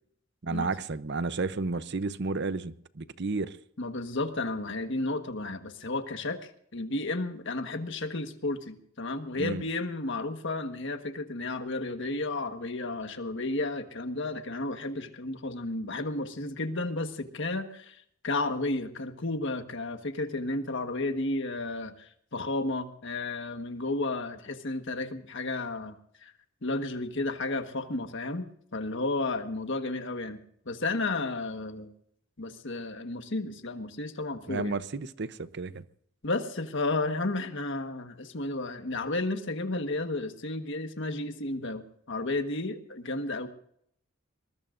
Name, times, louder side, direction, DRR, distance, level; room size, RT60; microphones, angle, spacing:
voice 1, 0.4-3.6 9.4-9.6 34.5-35.8, right 3 dB, 60° right, 0.7 m, -32 dB
voice 2, 3.8-25.9 26.2-26.3 26.6-31.9 32.4-34.7 36.2-43.5, left 2 dB, 65° left, 1.4 m, -32 dB
22.0 x 21.0 x 2.6 m
head